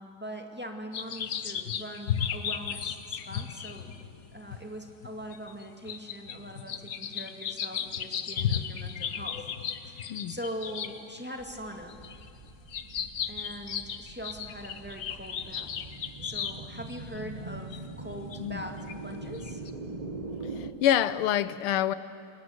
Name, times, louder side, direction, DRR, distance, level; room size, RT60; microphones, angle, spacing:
voice 1, 0.0-3.9 4.3-9.4 9.9-12.0 13.3-15.7 16.2-19.6, equal, 5° right, 3 dB, 1.8 m, -42 dB
sound 1, 0.9-11.0 11.6-17.2 17.7-17.8 18.3-18.4 18.9-19.0 19.3-19.7, left 8 dB, 55° left, 1.0 m, -35 dB
sound 2, 1.8-2.7 3.2-3.3 3.7-4.7 5.2-5.4 5.8-6.0 6.3-6.9 7.2-7.4 7.8-8.0 8.5-8.6 9.0-10.0 10.5-11.3 11.7-12.2, left 2 dB, 35° left, 7.4 m, -57 dB
sound 3, 11.4-20.7, right 3 dB, 25° right, 1.1 m, -42 dB
voice 2, 20.6-21.9, left 11 dB, 80° left, 15 dB, 1.7 m, -26 dB
28.5 x 20.5 x 8.0 m, 2.7 s
omnidirectional pair, 2.4 m